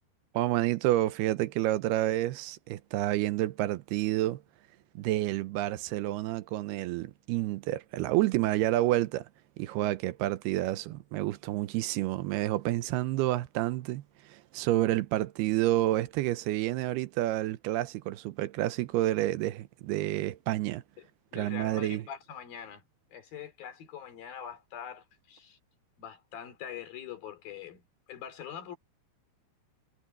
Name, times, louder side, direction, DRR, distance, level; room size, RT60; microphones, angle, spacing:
voice 1, 0.3-4.4 5.0-9.3 9.6-14.0 14.3-20.8 21.3-22.0, right 16 dB, 85° right, 2.7 m, -29 dB
voice 2, 21.3-22.8 23.1-25.6 26.0-27.8 28.1-28.8, left 9 dB, 65° left, 4.5 m, -43 dB
omnidirectional pair, 4.6 m